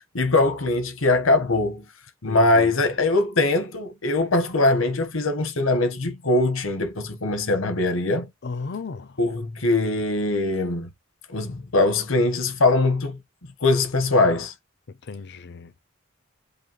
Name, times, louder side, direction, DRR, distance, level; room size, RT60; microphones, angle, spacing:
voice 1, 0.1-1.8 2.2-8.3 9.2-10.9 11.3-13.2 13.6-14.5, left 2 dB, 70° left, 1.0 m, -22 dB
voice 2, 2.3-2.7 8.4-9.2 15.0-15.8, left 4 dB, 55° left, 0.5 m, -35 dB
5.2 x 2.3 x 2.9 m
head